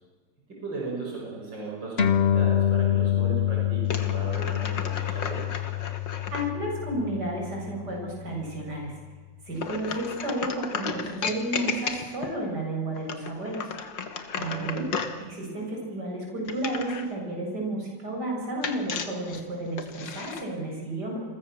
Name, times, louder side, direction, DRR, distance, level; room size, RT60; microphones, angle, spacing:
voice 1, 0.5-5.6 14.3-14.8, right 3 dB, 90° right, -2 dB, 6.2 m, -37 dB
sound 1, 2.0-8.8, left 10 dB, 35° left, 1.9 m, -27 dB
sound 2, 3.8-6.5 9.6-12.4 12.9-15.2 16.5-17.1 18.6-20.4, left 5 dB, 85° left, 2.5 m, -34 dB
voice 2, 6.3-8.9 9.4-13.7 14.4-14.9 15.3-21.2, right 1 dB, 65° right, 0 dB, 8.0 m, -32 dB
29.0 x 23.0 x 7.2 m, 1.4 s
omnidirectional pair, 1.9 m